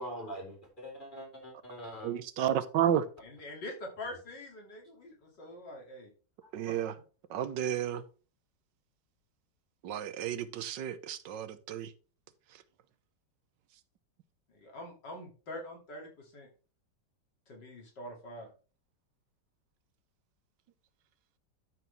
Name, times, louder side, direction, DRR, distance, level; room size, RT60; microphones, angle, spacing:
voice 1, 0.0-2.1, equal, 25° left, 4.2 m, -43 dB
voice 2, 2.0-3.0 6.5-6.9 7.3-8.0 9.8-11.9, right 10 dB, 85° right, 1.5 m, -31 dB
voice 3, 3.2-6.1 6.7-6.8 14.6-16.5 17.5-18.5, left 1 dB, 75° left, 3.3 m, -44 dB
12.0 x 6.1 x 3.4 m
omnidirectional pair, 1.9 m